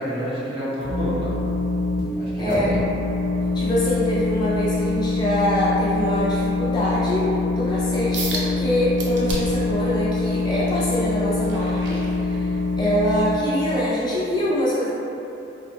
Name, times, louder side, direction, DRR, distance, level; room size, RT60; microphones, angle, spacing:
voice 1, 0.0-1.4 2.1-2.8, equal, 30° right, -8 dB, 0.7 m, -28 dB
sound 1, 0.8-2.0 2.5-13.3, left 3 dB, 80° right, 1.1 m, -24 dB
voice 2, 2.4-2.7 3.5-14.9, equal, 20° left, -7 dB, 0.3 m, -24 dB
sound 2, 8.1-8.5 9.0-9.7 10.2-12.7 13.2-13.5 14.0-14.1, right 2 dB, 65° right, 0.5 m, -32 dB
3.5 x 2.2 x 2.7 m, 2.8 s
head